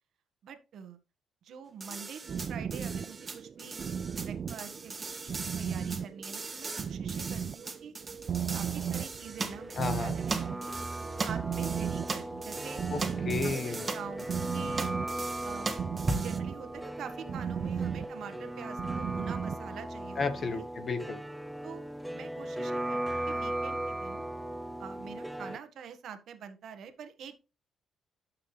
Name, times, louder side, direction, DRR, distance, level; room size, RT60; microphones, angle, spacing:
voice 1, 0.4-1.0 1.4-3.8 4.2-7.9 8.5-10.8 11.2-12.9 13.4-14.9 15.4-15.7 16.2-20.6 21.6-21.8 22.1-24.2 24.8-27.3, right 7 dB, 70° right, 9 dB, 1.5 m, -46 dB
sound 1, 1.8-16.4, right 3 dB, 30° right, 1.7 m, -39 dB
sound 2, 2.2-19.7, right 7 dB, 50° right, 0.4 m, -36 dB
sound 3, 9.4-25.6, right 1 dB, 5° right, 0.6 m, -38 dB
voice 2, 9.7-10.2 12.9-14.0 20.2-21.2, left 4 dB, 45° left, 9 dB, 1.4 m, -33 dB
12.0 x 5.8 x 3.4 m, 0.31 s
cardioid pair, 90°, 0 cm